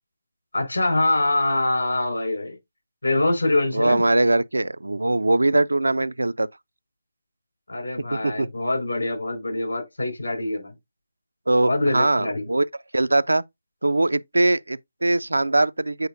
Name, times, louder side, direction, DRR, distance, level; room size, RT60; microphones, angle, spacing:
voice 1, 0.5-2.6 3.0-4.0 7.7-10.7 11.6-12.5, left 2 dB, 75° left, 4.3 m, -24 dB
voice 2, 3.7-6.5 8.1-8.5 11.5-12.6 12.9-13.4 13.8-16.1, right 2 dB, 75° right, 0.4 m, -21 dB
7.9 x 4.8 x 2.5 m
figure-of-eight pair, 145°, 0 cm